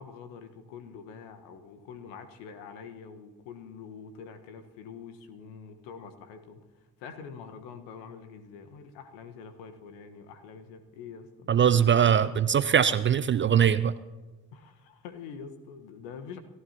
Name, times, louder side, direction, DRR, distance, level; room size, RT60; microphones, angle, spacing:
voice 1, 0.0-6.6 7.0-11.7 12.1-12.3 14.5-16.4, left 6 dB, 65° left, 9 dB, 1.5 m, -45 dB
voice 2, 11.5-13.9, right 8 dB, 25° right, 15 dB, 0.5 m, -22 dB
29.5 x 14.5 x 2.9 m, 1.2 s
figure-of-eight pair, 45°, 47 cm